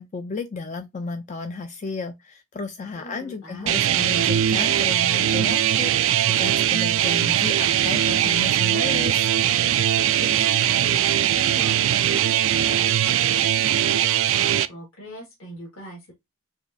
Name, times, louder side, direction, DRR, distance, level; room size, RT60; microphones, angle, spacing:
voice 1, 0.0-9.3, left 4 dB, 35° left, 0.3 m, -33 dB
voice 2, 2.9-4.0 10.0-16.1, equal, 65° left, 1.6 m, -41 dB
sound 1, 3.7-14.7, right 11 dB, 65° right, 0.3 m, -21 dB
4.9 x 2.6 x 2.6 m
head